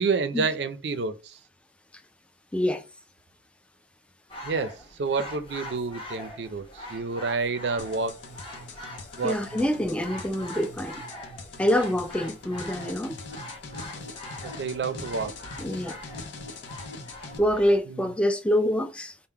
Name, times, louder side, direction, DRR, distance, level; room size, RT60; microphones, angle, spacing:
voice 1, 0.0-1.4 4.4-8.2 9.2-9.4 14.6-15.4 17.9-18.0, right 4 dB, 70° right, 0.5 m, -29 dB
voice 2, 2.5-2.8 9.2-11.0 11.6-13.2 15.6-16.0 17.4-19.2, equal, 5° left, 0.3 m, -25 dB
sound 1, 4.3-17.8, left 1 dB, 30° left, 0.9 m, -43 dB
sound 2, 7.8-17.4, left 3 dB, 85° left, 0.7 m, -42 dB
3.6 x 2.1 x 4.4 m
head